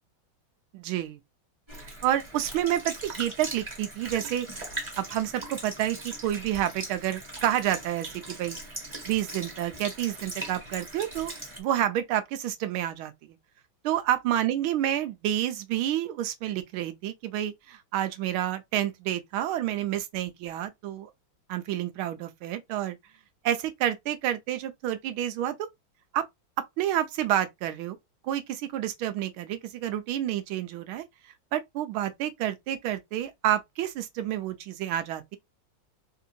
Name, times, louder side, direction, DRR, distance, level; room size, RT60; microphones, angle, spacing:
voice 1, 0.7-1.2 2.0-4.5 5.0-8.6 9.1-11.3 11.6-13.4 13.8-21.1 21.5-23.0 23.4-25.5 26.1-26.2 26.8-28.0 28.2-31.0 31.5-35.4, right 12 dB, 85° right, 1.5 m, -29 dB
Sink (filling or washing) / Liquid, 1.7-11.6, right 2 dB, 15° right, 1.2 m, -40 dB
4.3 x 2.8 x 2.5 m
omnidirectional pair, 2.3 m